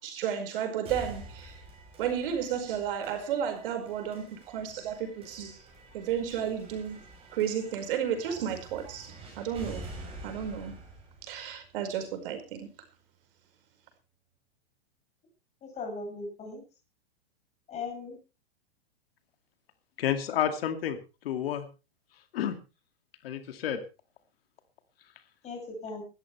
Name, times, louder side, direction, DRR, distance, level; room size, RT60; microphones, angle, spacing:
voice 1, 0.0-1.6 2.0-5.6 5.9-9.9 10.2-10.8 11.2-12.7, right 8 dB, 60° right, 5.1 m, -33 dB
sound 1, 0.8-12.8, right 1 dB, 20° right, 6.3 m, -48 dB
voice 2, 15.6-16.6 17.7-18.2 25.4-26.0, left 3 dB, 20° left, 7.0 m, -38 dB
voice 3, 20.0-21.0 21.2-21.7 22.3-22.6 23.2-23.8, left 10 dB, 65° left, 2.4 m, -30 dB
19.0 x 13.5 x 3.3 m
supercardioid pair, 155°, 32 cm